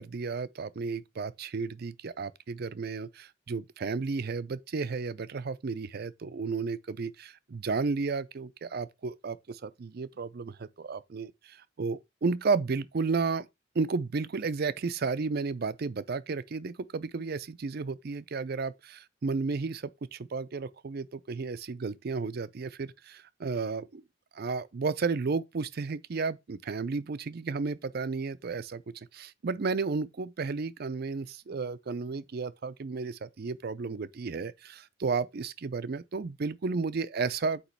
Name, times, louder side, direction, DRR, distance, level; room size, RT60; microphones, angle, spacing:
voice 1, 0.0-13.5 13.7-24.0 24.3-37.6, right 4 dB, 50° right, 0.4 m, -33 dB
8.3 x 3.0 x 4.5 m
head